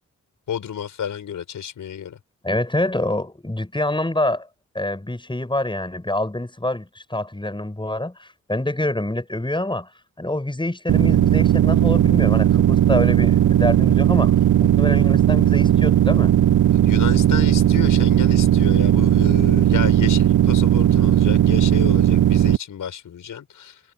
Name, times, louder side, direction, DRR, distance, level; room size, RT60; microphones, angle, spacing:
voice 1, 0.5-2.2 16.7-23.8, left 8 dB, 80° left, 5.1 m, -31 dB
voice 2, 2.4-4.5 4.7-9.9 10.2-14.3 14.6-16.3, left 1 dB, 15° left, 7.1 m, -26 dB
sound 1, 10.9-22.6, right 11 dB, 70° right, 0.7 m, -16 dB
cardioid pair, 55°, 31 cm